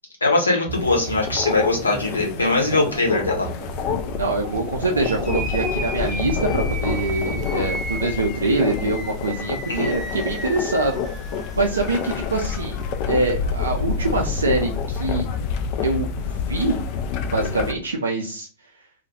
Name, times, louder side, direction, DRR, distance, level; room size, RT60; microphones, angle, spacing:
voice 1, 0.2-3.5 9.7-9.9, left 2 dB, 80° left, -1 dB, 0.8 m, -21 dB
sound 1, 0.7-17.7, left 6 dB, 45° left, 0.3 m, -28 dB
sound 2, 0.7-7.5, right 5 dB, 35° right, 0.7 m, -35 dB
voice 2, 4.2-12.8 13.1-15.3 15.8-16.8 17.3-18.5, right 2 dB, 75° right, 2 dB, 0.3 m, -24 dB
sound 3, 5.0-12.9, right 1 dB, ahead, 0.6 m, -35 dB
2.2 x 2.1 x 2.7 m, 0.38 s
figure-of-eight pair, 90°, 0 cm